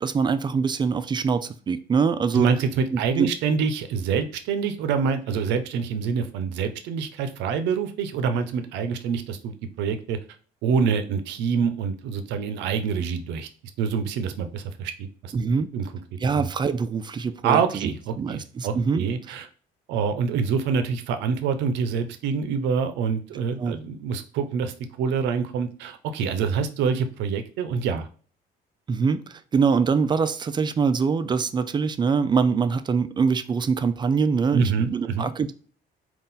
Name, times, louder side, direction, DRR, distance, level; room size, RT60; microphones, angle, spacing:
voice 1, 0.0-2.5 2.9-3.3 15.3-15.7 16.2-17.9 18.2-19.0 23.6-23.8 28.9-35.5, right 5 dB, 25° right, 0.3 m, -24 dB
voice 2, 2.3-9.5 9.8-10.2 10.6-13.5 13.8-15.3 15.7-15.9 16.3-16.5 17.4-19.5 19.9-28.1 34.5-35.3, right 6 dB, 90° right, 0.6 m, -26 dB
4.0 x 2.4 x 3.7 m
cardioid pair, 115°, 18 cm